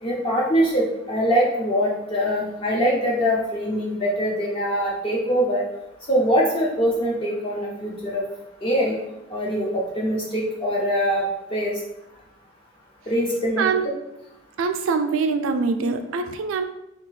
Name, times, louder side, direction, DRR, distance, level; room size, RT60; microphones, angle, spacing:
voice 1, 0.0-5.6 6.1-8.2 8.6-9.0 9.3-11.8 13.1-13.7, equal, 25° left, -3 dB, 0.4 m, -23 dB
voice 2, 14.6-16.6, right 5 dB, 70° right, 8 dB, 0.3 m, -23 dB
3.5 x 2.3 x 3.1 m, 0.90 s
head